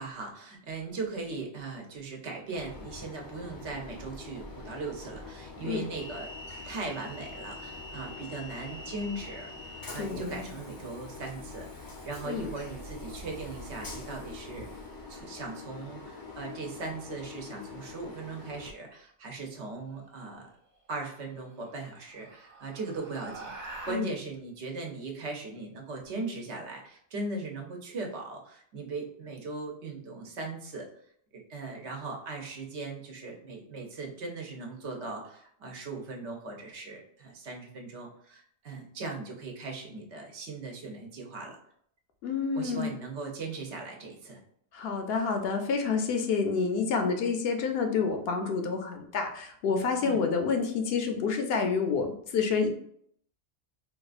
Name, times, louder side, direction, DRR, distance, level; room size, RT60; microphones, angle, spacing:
voice 1, 0.0-6.3 6.6-14.8 15.1-20.5 20.9-30.9 31.3-41.6 42.5-44.4 50.0-50.2, right 3 dB, 85° right, 1 dB, 1.0 m, -39 dB
Train, 2.5-18.7, left 3 dB, 30° left, 0.4 m, -44 dB
voice 2, 10.0-10.5 12.2-12.5 23.9-24.1 42.2-42.9 44.7-52.7, left 5 dB, 65° left, 5 dB, 0.7 m, -28 dB
sound 1, 11.8-15.3 17.6-18.1 20.1-20.2 20.7-20.8 21.3-23.9, right 2 dB, 45° right, 0.9 m, -47 dB
4.1 x 2.4 x 2.4 m, 0.66 s
omnidirectional pair, 1.1 m